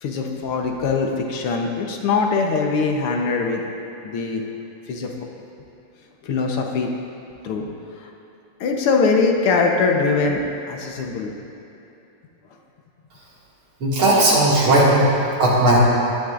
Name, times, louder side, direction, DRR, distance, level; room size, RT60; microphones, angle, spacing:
voice 1, 0.0-3.6 4.0-4.4 4.9-5.1 6.2-6.9 7.4-7.7 8.6-11.3, left 4 dB, 85° left, 1 dB, 1.9 m, -22 dB
voice 2, 13.8-15.1 15.4-15.8, right 1 dB, 75° right, -6 dB, 3.1 m, -16 dB
16.0 x 11.5 x 2.5 m, 2.8 s
omnidirectional pair, 2.4 m